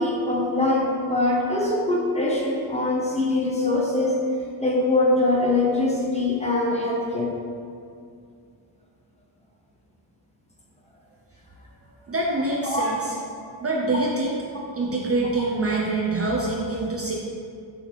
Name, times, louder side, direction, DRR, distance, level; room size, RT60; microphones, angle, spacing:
voice 1, 0.0-4.2 4.6-7.3 12.6-12.8, left 2 dB, 15° left, -3 dB, 1.0 m, -23 dB
voice 2, 12.1-13.1 13.6-14.4 14.8-17.2, right 2 dB, 30° right, -3 dB, 0.6 m, -25 dB
6.4 x 6.4 x 3.3 m, 2.4 s
wide cardioid pair, 155°, 46 cm